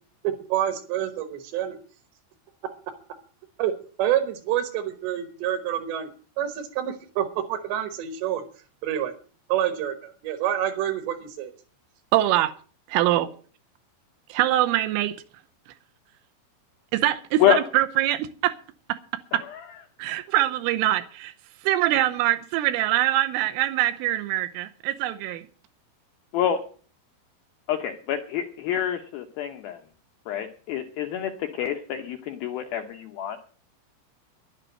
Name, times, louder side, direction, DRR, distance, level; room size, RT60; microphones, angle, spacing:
voice 1, 0.2-1.8 3.6-3.7 4.0-6.1 6.4-8.4 8.8-9.1 9.5-11.5, right 11 dB, 70° right, 3.2 m, -27 dB
voice 2, 12.1-12.5 12.9-13.3 14.3-15.2 16.9-18.5 18.9-19.0 19.3-19.4 20.0-21.3 21.6-25.4, right 14 dB, 90° right, 3.4 m, -23 dB
voice 3, 27.7-29.8 30.3-33.4, left 10 dB, 85° left, 2.1 m, -26 dB
11.0 x 9.5 x 7.6 m
omnidirectional pair, 5.5 m